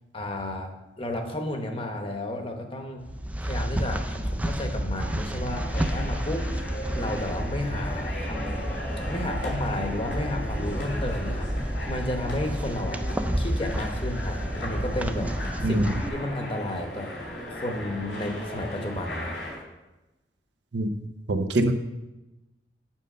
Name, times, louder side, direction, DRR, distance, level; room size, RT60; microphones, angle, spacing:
voice 1, 0.1-0.7 1.0-3.0 3.4-6.5 6.9-8.5 9.1-13.0 13.4-15.3 15.6-15.8 16.1-17.1 17.5-19.4, left 1 dB, 30° left, 4 dB, 1.0 m, -32 dB
sound 1, 3.0-16.1, equal, 10° right, 0.3 m, -30 dB
sound 2, 4.9-19.6, left 1 dB, 85° left, 2.7 m, -37 dB
voice 2, 15.6-15.9 20.7-20.9 21.3-21.7, right 1 dB, 75° right, 7 dB, 0.7 m, -23 dB
7.4 x 5.4 x 6.6 m, 1.0 s
head